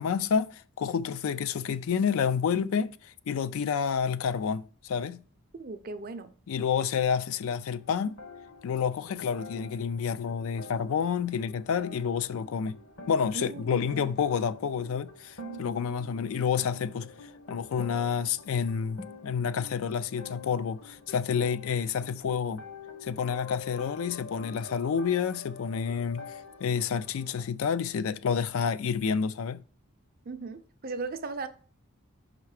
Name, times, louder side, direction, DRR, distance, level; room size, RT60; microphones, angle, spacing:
voice 1, 0.0-5.2 6.5-8.2 8.6-12.8 13.1-22.6 23.0-26.3 26.6-29.6, left 6 dB, 70° left, 0.3 m, -29 dB
voice 2, 5.6-6.3 13.3-14.2 30.3-31.5, right 3 dB, 40° right, 0.5 m, -37 dB
sound 1, 7.7-27.4, left 3 dB, 55° left, 0.8 m, -47 dB
5.6 x 3.6 x 4.7 m
head